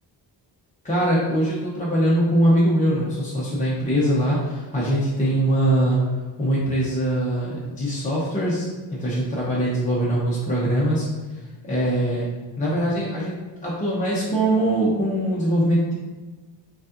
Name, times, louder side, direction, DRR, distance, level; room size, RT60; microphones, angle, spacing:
voice 1, 0.8-6.0 6.4-11.1 11.6-15.9, right 1 dB, 20° left, -7 dB, 0.6 m, -22 dB
5.2 x 2.4 x 2.5 m, 1.3 s
wide cardioid pair, 145°, 44 cm